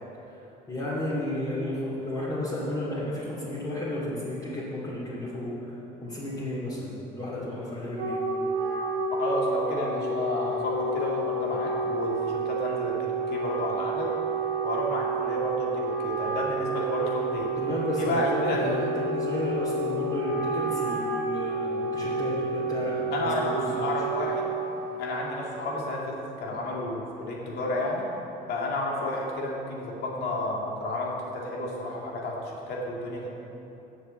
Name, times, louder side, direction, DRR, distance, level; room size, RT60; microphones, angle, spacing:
voice 1, 0.7-8.2 17.6-23.9, left 1 dB, 25° left, -10 dB, 2.4 m, -32 dB
Wind instrument woodwind instrument, 7.7-25.2, right 3 dB, 80° right, 1.9 m, -30 dB
voice 2, 9.2-14.1 14.6-17.5 18.0-18.7 23.1-24.5 25.0-28.1 28.5-33.3, left 1 dB, 70° left, -2 dB, 2.2 m, -31 dB
7.6 x 7.1 x 7.6 m, 3.0 s
cardioid pair, 110°, 17 cm